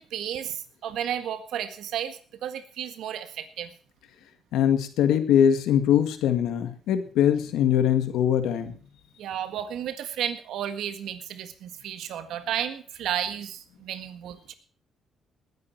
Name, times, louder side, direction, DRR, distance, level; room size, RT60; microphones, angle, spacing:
voice 1, 0.0-3.7 9.2-14.5, right 10 dB, 80° right, 10 dB, 1.6 m, -33 dB
voice 2, 4.5-8.8, left 9 dB, 90° left, 9 dB, 1.8 m, -22 dB
20.0 x 9.8 x 4.6 m, 0.42 s
cardioid pair, 90°, 0 cm